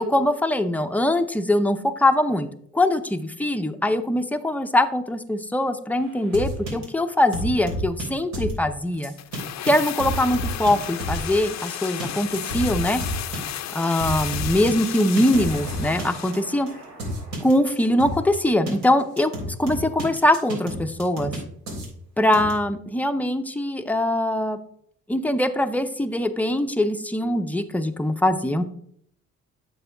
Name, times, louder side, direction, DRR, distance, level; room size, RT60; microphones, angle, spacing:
voice 1, 0.0-2.5 2.7-9.1 9.6-13.0 13.7-16.7 17.4-21.3 22.2-24.6 25.1-28.6, left 1 dB, 5° left, 8 dB, 0.6 m, -22 dB
sound 1, 6.3-6.8 7.3-8.0 8.3-8.5 9.0-9.4 9.7-9.8 10.0-11.3 11.7-18.4 18.7-18.8 19.2-21.4 21.7-21.9 22.3-22.5, right 1 dB, 65° right, 3.4 m, -31 dB
sound 2, 9.2-16.5 16.7-16.8, left 12 dB, 65° left, 0.6 m, -33 dB
8.1 x 6.2 x 3.4 m, 0.67 s
cardioid pair, 90°, 30 cm